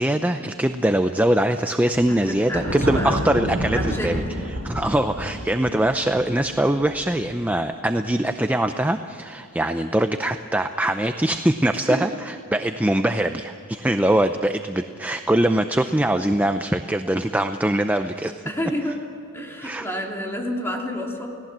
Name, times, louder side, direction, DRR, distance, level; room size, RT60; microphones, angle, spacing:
voice 1, 0.0-4.2 4.5-18.5 19.6-19.9, right 1 dB, 10° right, 7 dB, 0.5 m, -22 dB
Thunder, 1.9-7.3, equal, 60° right, 6.4 m, -29 dB
voice 2, 2.1-3.3 3.6-4.2 11.9-12.0 18.5-19.0 19.3-21.3, equal, 10° left, 0 dB, 2.9 m, -29 dB
29.5 x 18.0 x 7.4 m, 2.6 s
head